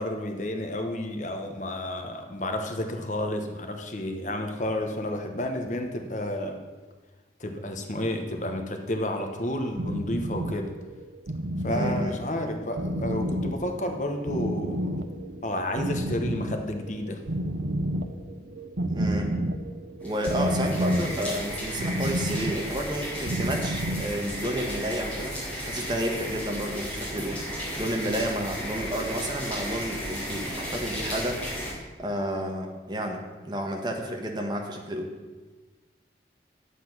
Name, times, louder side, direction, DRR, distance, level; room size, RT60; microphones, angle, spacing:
voice 1, 0.0-6.6 7.4-10.7 11.6-14.9 15.4-17.3, left 1 dB, 45° left, 4 dB, 1.1 m, -31 dB
sound 1, 9.8-24.2, equal, 80° right, 0.8 m, -31 dB
voice 2, 11.7-12.1 18.9-19.3 20.0-25.4 25.6-27.4 27.8-31.7 32.0-35.1, right 1 dB, 25° right, 2 dB, 1.3 m, -31 dB
sound 2, 20.0-31.7, equal, 5° left, 4.2 m, -34 dB
9.9 x 8.4 x 6.0 m, 1.3 s
head